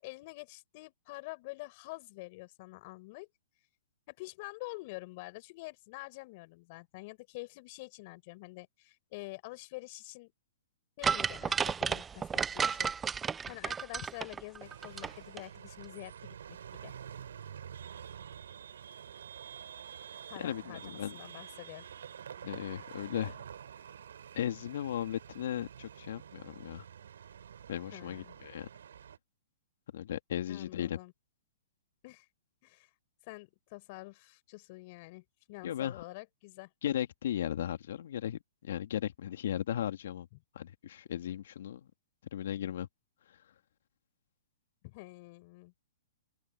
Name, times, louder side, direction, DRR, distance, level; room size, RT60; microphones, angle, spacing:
voice 1, 0.0-3.3 4.1-10.3 11.0-12.9 13.5-16.4 16.8-16.9 20.3-21.8 27.9-28.3 30.5-31.1 32.0-32.3 32.6-32.9 33.2-36.7 44.8-45.7, left 24 dB, 45° left, 5.1 m, -47 dB
sound 1, 11.0-15.1 15.4-15.5, right 6 dB, 15° right, 0.6 m, -32 dB
sound 2, 14.6-29.2, right 8 dB, 75° right, 8.0 m, -48 dB
voice 2, 20.4-21.1 22.4-23.4 24.3-26.9 27.7-28.7 29.9-31.0 35.6-36.0 36.8-40.3 40.5-41.9 42.3-42.9 43.3-43.4, left 10 dB, 65° left, 2.3 m, -36 dB
open air
hypercardioid pair, 130°, 0 cm